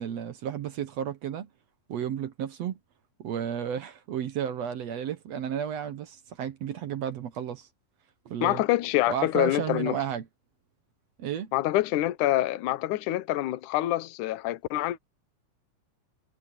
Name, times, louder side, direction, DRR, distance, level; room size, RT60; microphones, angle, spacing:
voice 1, 0.0-1.5 1.9-2.8 3.2-7.7 8.3-8.6 9.1-10.3 11.2-11.5, right 9 dB, 65° right, 1.7 m, -32 dB
voice 2, 8.4-10.0 11.5-15.0, left 15 dB, 70° left, 2.2 m, -26 dB
omnidirectional pair, 4.2 m